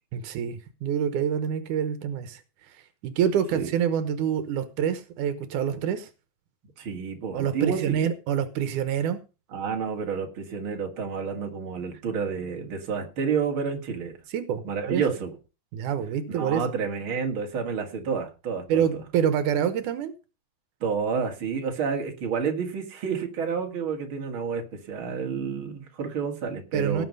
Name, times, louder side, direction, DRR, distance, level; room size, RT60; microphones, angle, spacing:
voice 1, 0.1-2.4 2.7-6.1 7.3-9.2 14.3-15.0 15.7-16.6 18.7-20.1 26.7-27.1, right 8 dB, 85° right, 11 dB, 2.5 m, -26 dB
voice 2, 6.8-8.0 9.5-14.2 14.6-15.3 16.3-18.8 20.8-27.1, right 6 dB, 45° right, 3 dB, 2.8 m, -30 dB
18.0 x 6.0 x 5.4 m, 0.31 s
omnidirectional pair, 3.5 m